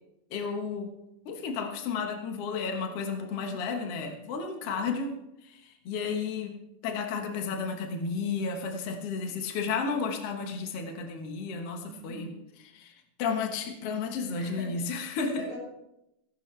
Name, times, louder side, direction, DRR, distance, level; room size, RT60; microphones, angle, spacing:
voice 1, 0.3-0.9 1.2-6.5 6.8-15.4, left 5 dB, 65° left, 3 dB, 1.5 m, -33 dB
voice 2, 3.2-3.6 4.6-4.9 11.9-12.3 14.3-14.9 15.4-15.6, left 1 dB, 50° left, -2 dB, 7.4 m, -44 dB
17.0 x 16.0 x 3.3 m, 0.86 s
omnidirectional pair, 4.6 m